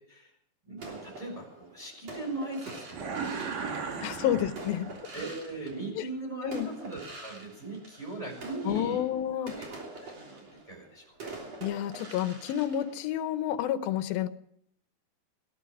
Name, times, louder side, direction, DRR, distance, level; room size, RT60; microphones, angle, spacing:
voice 1, 0.7-4.4 5.1-9.1 9.4-11.3, right 2 dB, 10° right, -2 dB, 5.5 m, -40 dB
sound 1, 0.8-6.2 6.5-13.7, right 3 dB, 45° right, 4.2 m, -45 dB
sound 2, 2.9-5.2, right 5 dB, 65° right, 3.4 m, -36 dB
voice 2, 4.0-4.9 5.9-6.1 6.4-6.7 8.7-9.6 11.6-14.3, left 11 dB, 80° left, 11 dB, 2.6 m, -30 dB
18.5 x 11.0 x 6.3 m, 0.70 s
omnidirectional pair, 4.3 m